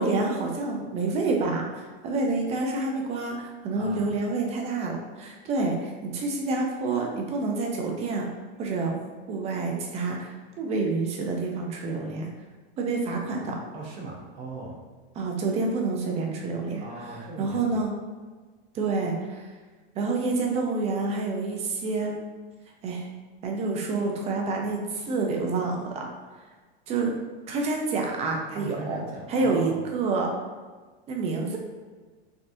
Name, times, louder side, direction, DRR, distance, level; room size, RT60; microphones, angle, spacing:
voice 1, 0.0-8.3 8.6-8.9 9.3-12.3 12.8-13.6 15.2-17.9 18.7-19.5 20.0-22.1 22.8-23.1 23.4-26.1 26.9-27.1 27.5-29.0 29.3-30.3 31.1-31.6, right 3 dB, 20° right, 1 dB, 0.3 m, -28 dB
voice 2, 3.7-4.2 13.7-14.8 16.8-17.8 28.5-29.8, right 2 dB, 75° right, -2 dB, 1.0 m, -39 dB
3.3 x 2.6 x 2.6 m, 1.3 s
supercardioid pair, 135°, 32 cm